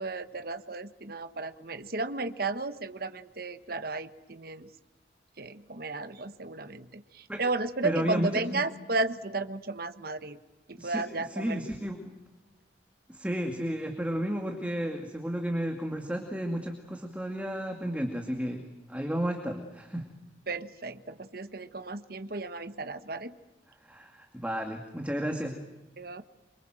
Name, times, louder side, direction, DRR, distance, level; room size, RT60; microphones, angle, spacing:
voice 1, 0.0-4.7 5.4-10.4 10.7-11.7 20.5-23.4 26.0-26.2, right 3 dB, 55° right, 10 dB, 1.3 m, -34 dB
voice 2, 7.8-8.6 10.8-11.0 11.4-12.1 13.1-18.6 18.9-20.1 23.8-25.6, equal, 5° right, 3 dB, 2.3 m, -32 dB
27.0 x 25.0 x 7.7 m, 1.0 s
head